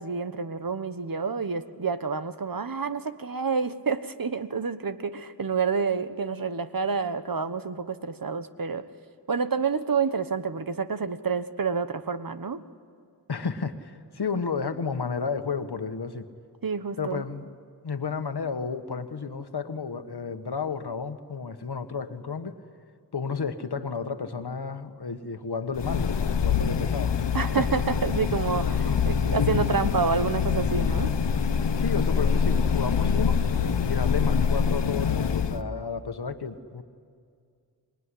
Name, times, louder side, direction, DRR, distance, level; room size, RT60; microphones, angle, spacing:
voice 1, 0.0-8.9 9.3-12.6 16.6-17.2 27.3-31.1, right 5 dB, 55° right, 12 dB, 1.3 m, -28 dB
voice 2, 13.3-16.3 17.0-17.5 17.8-22.6 23.1-27.2 27.6-27.7 28.6-29.0 31.7-36.8, left 5 dB, 65° left, 8 dB, 1.5 m, -32 dB
sound 1, 25.7-35.6, left 6 dB, 85° left, 1.0 m, -25 dB
26.5 x 21.0 x 10.0 m, 2.2 s
cardioid pair, 45°, 41 cm